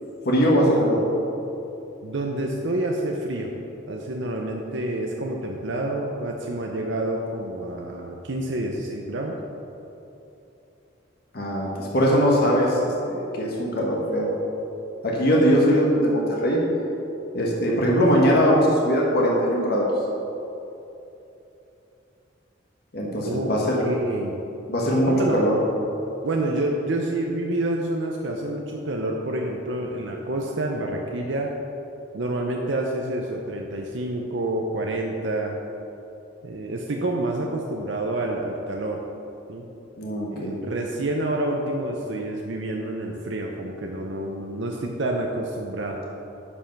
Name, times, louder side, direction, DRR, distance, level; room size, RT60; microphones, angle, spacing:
voice 1, 0.2-1.0 11.3-12.8 13.1-14.3 15.0-16.6 17.3-19.9 22.9-23.9 24.7-25.5 40.0-40.6, equal, 55° left, -3 dB, 1.5 m, -21 dB
voice 2, 2.0-3.5 3.9-9.4 23.2-23.5 23.8-24.4 25.1-25.4 26.2-31.5 32.1-35.6 36.4-39.0 39.5-39.7 40.3-46.0, right 1 dB, 70° right, 0 dB, 0.7 m, -28 dB
9.8 x 5.5 x 5.9 m, 2.9 s
head